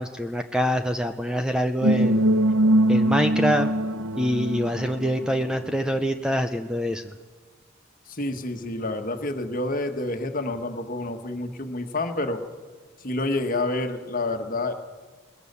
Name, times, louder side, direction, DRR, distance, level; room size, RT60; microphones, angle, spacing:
voice 1, 0.0-2.2 2.9-3.7 4.2-7.1, equal, 5° right, 7 dB, 0.6 m, -25 dB
sound 1, 1.8-5.7, right 1 dB, 75° right, 1.1 m, -22 dB
voice 2, 8.1-12.4 13.0-14.7, left 2 dB, 40° left, 6 dB, 1.6 m, -28 dB
21.5 x 20.0 x 6.9 m, 1.5 s
head